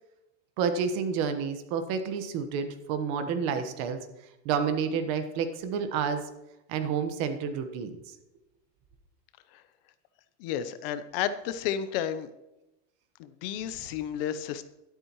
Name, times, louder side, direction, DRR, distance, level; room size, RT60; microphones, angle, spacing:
voice 1, 0.6-4.0 4.4-6.2 6.7-8.0, right 6 dB, 50° right, 8 dB, 1.3 m, -29 dB
voice 2, 10.4-12.3 13.2-14.6, left 9 dB, 55° left, 12 dB, 0.8 m, -32 dB
12.5 x 12.0 x 3.1 m, 0.93 s
supercardioid pair, 165°, 34 cm